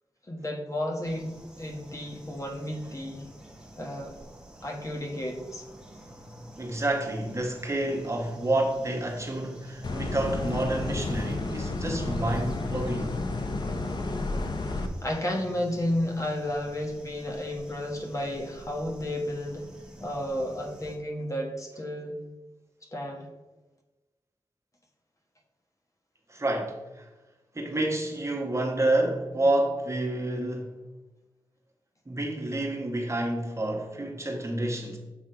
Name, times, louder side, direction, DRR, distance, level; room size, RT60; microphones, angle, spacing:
voice 1, 0.3-3.2 3.8-4.1 4.6-5.7 15.0-19.7 20.0-22.2 22.9-23.2, left 1 dB, 35° left, 1.3 m, -32 dB
sound 1, 1.0-21.0, right 1 dB, 5° right, 1.4 m, -49 dB
voice 2, 6.6-13.2 26.3-27.0 27.5-30.7 32.1-35.0, right 1 dB, 30° right, 1.4 m, -29 dB
sound 2, 9.8-14.9, left 2 dB, 50° left, 0.7 m, -31 dB
7.2 x 3.6 x 4.5 m
cardioid pair, 65°, 9 cm